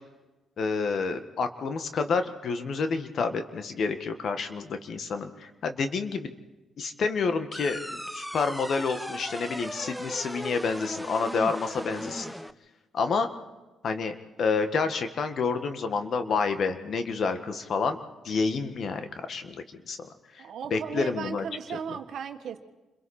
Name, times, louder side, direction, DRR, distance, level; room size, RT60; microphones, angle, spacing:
voice 1, 0.6-6.3 6.8-12.3 12.9-13.3 13.8-18.0 18.2-20.0 20.7-21.4 21.7-21.8, left 4 dB, 60° left, 8 dB, 1.7 m, -29 dB
sound 1, 7.5-12.5, equal, ahead, 0.7 m, -37 dB
voice 2, 20.4-22.6, right 7 dB, 70° right, 7 dB, 1.5 m, -36 dB
28.5 x 22.5 x 4.4 m, 1.1 s
supercardioid pair, 60°, 0 cm